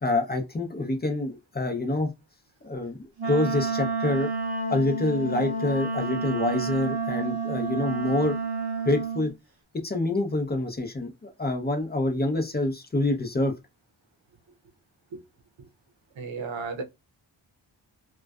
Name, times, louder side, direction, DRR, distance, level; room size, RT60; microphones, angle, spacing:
voice 1, 0.0-2.1 2.6-3.0 3.2-4.3 4.7-8.4 8.8-9.3 9.7-13.5, left 2 dB, 20° left, 0.6 m, -26 dB
Wind instrument woodwind instrument, 3.2-9.3, right 3 dB, 55° right, 0.8 m, -29 dB
voice 2, 16.2-16.8, right 4 dB, 90° right, 0.6 m, -33 dB
2.5 x 2.2 x 2.2 m
wide cardioid pair, 85°, 44 cm